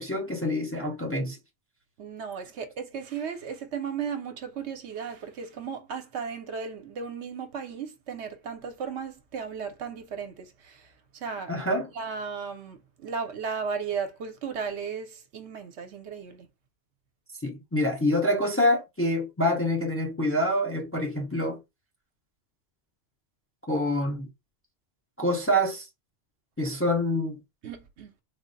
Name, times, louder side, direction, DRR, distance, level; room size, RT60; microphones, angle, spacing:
voice 1, 0.0-1.4 11.5-11.9 17.4-21.6 23.7-24.3 25.2-25.8 26.6-27.4, left 1 dB, 15° left, 0.6 m, -26 dB
voice 2, 2.0-10.8 11.2-11.5 12.0-16.5 27.6-28.1, right 6 dB, 70° right, 0.9 m, -35 dB
3.6 x 2.0 x 3.8 m
omnidirectional pair, 1.2 m